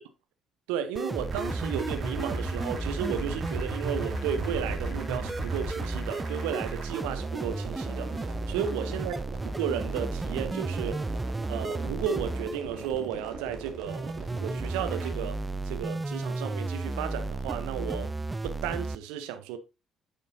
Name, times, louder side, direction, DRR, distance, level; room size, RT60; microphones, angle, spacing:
voice 1, 0.7-9.1 9.4-11.1 11.5-18.1 18.4-19.6, right 9 dB, 75° right, 0.8 m, -34 dB
sound 1, 1.0-19.0, right 2 dB, 20° right, 0.5 m, -34 dB
sound 2, 1.2-15.1, right 3 dB, 55° right, 2.5 m, -39 dB
9.5 x 6.9 x 2.7 m
figure-of-eight pair, 45°, 0 cm